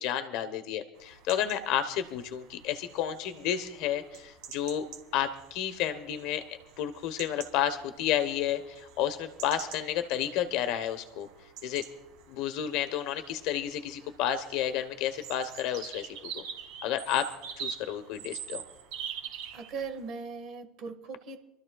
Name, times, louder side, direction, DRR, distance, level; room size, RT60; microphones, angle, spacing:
voice 1, 0.0-4.8 5.1-6.4 6.8-11.3 11.6-11.8 12.3-16.4 16.8-17.3 17.6-18.6, left 10 dB, 50° left, 10 dB, 1.1 m, -31 dB
sound 1, 1.0-20.1, right 8 dB, 60° right, 2.2 m, -46 dB
voice 2, 19.5-21.4, right 5 dB, 40° right, 6 dB, 1.6 m, -39 dB
27.0 x 13.0 x 2.4 m, 0.92 s
cardioid pair, 170°, 0 cm